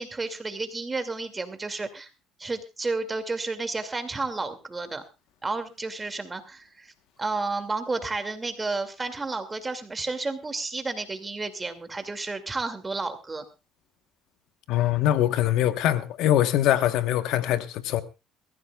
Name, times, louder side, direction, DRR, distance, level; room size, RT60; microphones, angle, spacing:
voice 1, 0.0-2.1 2.4-5.0 5.4-6.9 7.2-13.4, right 3 dB, 20° right, 2.4 m, -31 dB
voice 2, 14.7-18.0, left 12 dB, 75° left, 1.2 m, -23 dB
22.5 x 14.5 x 2.4 m
supercardioid pair, 90°, 0 cm